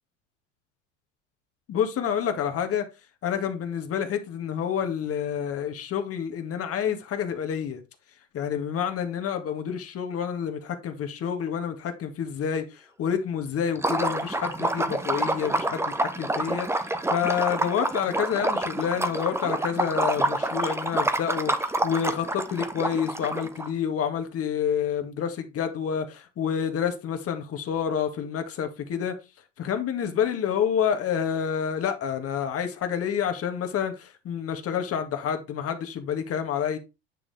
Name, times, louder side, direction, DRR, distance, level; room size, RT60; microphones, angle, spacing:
voice 1, 1.7-2.8 3.2-7.8 8.3-29.2 29.6-36.8, left 8 dB, 40° left, 2.0 m, -28 dB
Liquid, 13.8-23.7, right 1 dB, 5° right, 1.1 m, -28 dB
10.0 x 6.0 x 3.5 m
hypercardioid pair, 75°, 36 cm